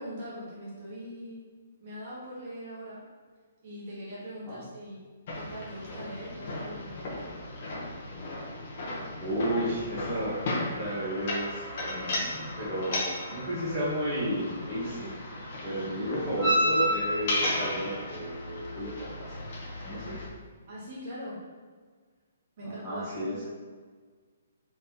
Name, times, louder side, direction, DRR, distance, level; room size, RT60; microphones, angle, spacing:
voice 1, 0.0-1.5 1.8-3.0 3.6-5.0 5.3-7.3 20.7-21.4 22.6-23.5, equal, 35° right, -7 dB, 1.4 m, -41 dB
sound 1, 5.3-20.3, left 1 dB, 40° left, 0.9 m, -33 dB
voice 2, 9.2-15.1 15.6-19.4 19.8-20.2 22.6-23.5, equal, ahead, -15 dB, 1.1 m, -33 dB
4.1 x 3.5 x 2.9 m, 1.5 s
hypercardioid pair, 170°, 0 cm